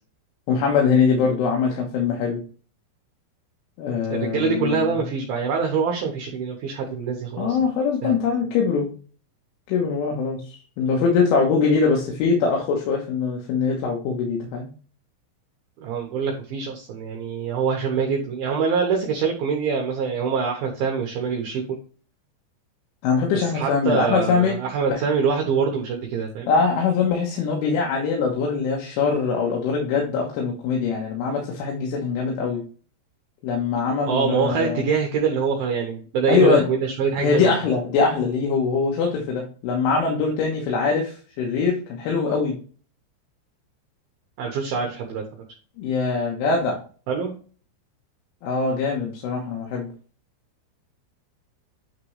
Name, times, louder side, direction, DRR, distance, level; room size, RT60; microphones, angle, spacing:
voice 1, 0.5-2.4 3.8-4.9 7.4-8.9 9.7-14.7 23.0-24.6 24.9-25.0 26.5-32.6 33.4-34.9 36.3-36.7 37.2-42.6 45.8-46.8 48.4-49.9, left 5 dB, 85° left, -1 dB, 3.7 m, -22 dB
voice 2, 4.1-7.6 8.0-8.2 15.8-21.8 23.3-26.5 34.1-37.6 44.4-45.2 47.1-47.3, right 5 dB, 75° right, 1 dB, 2.3 m, -24 dB
9.4 x 3.7 x 3.2 m, 0.39 s
omnidirectional pair, 5.5 m